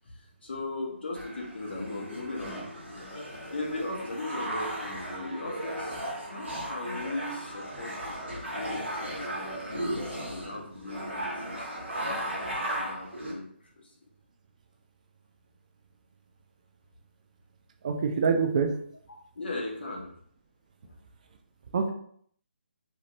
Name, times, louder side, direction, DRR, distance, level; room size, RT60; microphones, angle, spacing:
voice 1, 0.0-2.7 2.9-3.1 3.5-6.0 6.2-9.6 9.8-11.9 12.7-14.0 19.3-20.1 20.9-21.0, left 2 dB, 60° left, 0 dB, 0.8 m, -38 dB
sound 1, 1.1-13.3, right 1 dB, 85° right, 1.1 m, -36 dB
voice 2, 17.8-18.8 21.7-21.9, right 5 dB, 40° right, 4 dB, 0.3 m, -25 dB
2.9 x 2.1 x 2.9 m, 0.63 s
figure-of-eight pair, 145°, 6 cm